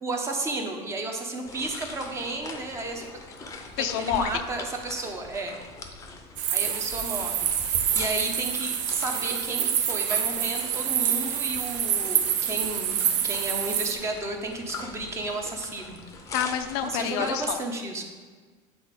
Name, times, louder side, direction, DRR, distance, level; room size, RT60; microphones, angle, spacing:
voice 1, 0.0-3.1 3.8-5.6 6.5-16.0 16.8-18.0, right 2 dB, 20° right, 3 dB, 0.8 m, -33 dB
sound 1, 1.4-17.5, left 4 dB, 20° left, 0.7 m, -42 dB
voice 2, 3.8-4.3 16.3-17.6, left 10 dB, 60° left, 8 dB, 0.5 m, -28 dB
sound 2, 6.4-13.9, right 9 dB, 85° right, 0.8 m, -27 dB
8.7 x 4.1 x 5.1 m, 1.5 s
supercardioid pair, 155°, 15 cm